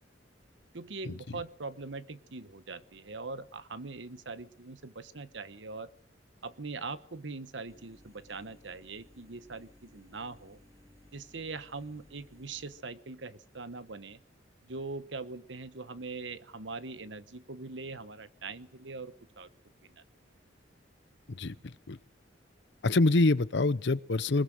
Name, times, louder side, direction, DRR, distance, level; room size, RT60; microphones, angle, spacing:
voice 1, 0.7-5.9 6.4-10.6 11.1-14.2 14.7-19.5 19.8-20.0, right 3 dB, 70° right, 14 dB, 1.1 m, -42 dB
sound 1, 7.7-12.8, left 1 dB, 15° right, 4.0 m, -60 dB
voice 2, 21.3-22.0 22.8-24.4, left 2 dB, 65° left, 17 dB, 0.8 m, -26 dB
20.5 x 20.5 x 6.5 m, 0.65 s
head